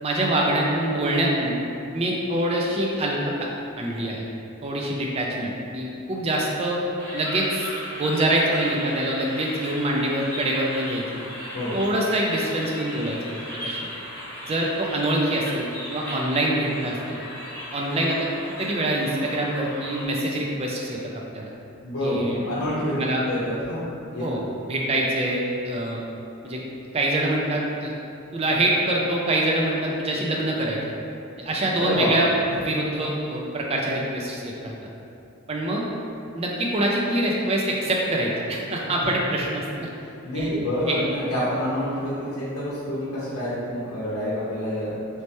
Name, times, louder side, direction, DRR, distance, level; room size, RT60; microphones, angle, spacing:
voice 1, 0.0-1.6 1.9-3.5 3.8-4.2 4.6-6.8 7.1-11.0 11.7-13.8 14.4-17.2 17.7-18.3 18.6-21.0 21.3-21.5 22.0-22.6 23.0-23.2 24.2-26.0 26.4-26.6 26.9-27.9 28.3-30.8 31.4-32.3 32.6-34.7 35.5-35.8 36.3-39.9 40.3-40.5 40.9-41.0, right 1 dB, 25° right, -2 dB, 0.4 m, -25 dB
sound 1, 7.0-20.0, equal, 10° left, 1.1 m, -37 dB
voice 2, 21.8-22.9 23.2-24.4 31.8-32.1 40.2-45.0, left 1 dB, 75° left, -9 dB, 0.7 m, -27 dB
3.2 x 2.9 x 3.1 m, 2.6 s
head